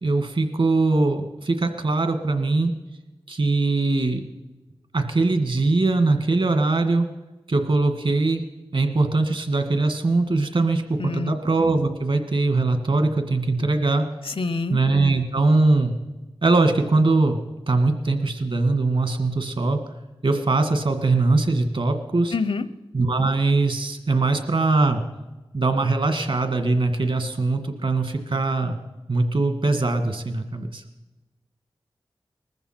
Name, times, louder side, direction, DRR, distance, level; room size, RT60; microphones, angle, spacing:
voice 1, 0.0-2.7 3.3-4.2 4.9-7.1 7.5-8.4 8.7-14.0 14.7-15.9 16.4-17.4 17.7-19.8 20.2-22.3 22.9-25.0 25.5-28.8 29.1-30.8, right 3 dB, 65° right, 7 dB, 1.9 m, -21 dB
voice 2, 11.0-11.3 14.3-14.8 22.3-22.6, left 4 dB, 70° left, 14 dB, 0.8 m, -26 dB
20.0 x 14.5 x 4.5 m, 1.1 s
cardioid pair, 45°, 10 cm